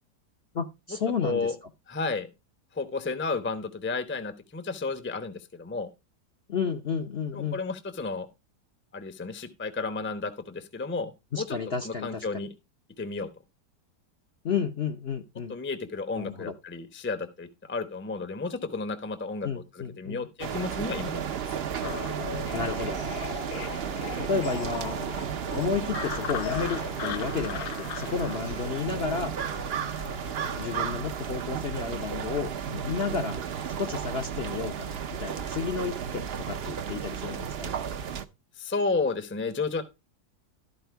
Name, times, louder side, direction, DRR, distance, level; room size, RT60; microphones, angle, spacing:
voice 1, 0.5-1.5 6.5-7.6 11.3-12.4 14.4-15.5 16.2-16.5 19.4-20.6 22.5-23.0 24.2-25.0 25.5-29.3 30.6-37.7, left 5 dB, 50° left, 5 dB, 0.8 m, -32 dB
voice 2, 1.2-1.6 1.9-2.3 2.7-5.9 7.3-8.3 8.9-11.6 11.8-12.5 13.0-13.3 15.5-19.5 19.7-21.2 38.6-39.8, left 4 dB, 10° left, 10 dB, 0.6 m, -32 dB
sound 1, 20.4-38.2, right 7 dB, 55° right, 0.7 m, -33 dB
sound 2, 21.8-30.9, left 10 dB, 70° left, 1.1 m, -39 dB
13.5 x 4.4 x 4.5 m, 0.26 s
omnidirectional pair, 1.8 m